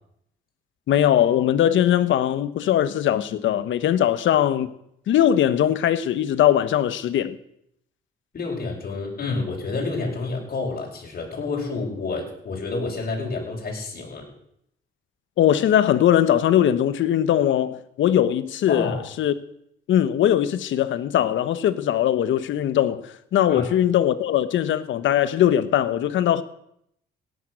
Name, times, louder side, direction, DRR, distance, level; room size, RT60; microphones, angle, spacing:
voice 1, 0.9-4.7 5.1-7.4 15.4-19.3 19.9-26.4, left 11 dB, 75° left, 1.2 m, -20 dB
voice 2, 8.3-14.3 18.7-19.0 23.5-23.6, left 3 dB, 50° left, 6.0 m, -29 dB
17.5 x 10.5 x 6.4 m
cardioid pair, 90°, 20 cm